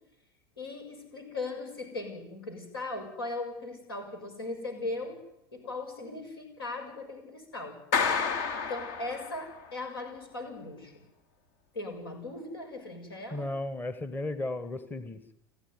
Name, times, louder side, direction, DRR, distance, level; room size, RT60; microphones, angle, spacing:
voice 1, 0.6-5.2 5.5-7.8 8.5-10.9 11.7-13.5, left 2 dB, 75° left, 4 dB, 6.7 m, -38 dB
Clapping, 7.9-9.7, left 5 dB, 55° left, 2.5 m, -30 dB
voice 2, 13.3-15.3, left 2 dB, 15° left, 12 dB, 1.4 m, -35 dB
29.5 x 11.5 x 9.8 m, 0.86 s
figure-of-eight pair, 80°, 13 cm